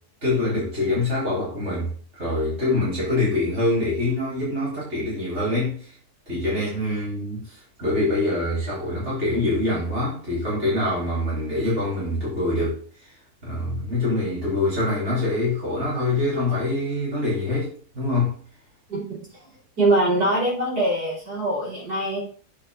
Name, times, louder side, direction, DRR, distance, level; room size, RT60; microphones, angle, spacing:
voice 1, 0.2-5.9 6.3-12.8 13.4-18.4, left 2 dB, 45° right, 5.5 m, -25 dB
voice 2, 18.9-19.3 19.8-22.2, right 1 dB, 75° right, 6.0 m, -23 dB
8.8 x 5.1 x 5.6 m
omnidirectional pair, 1.7 m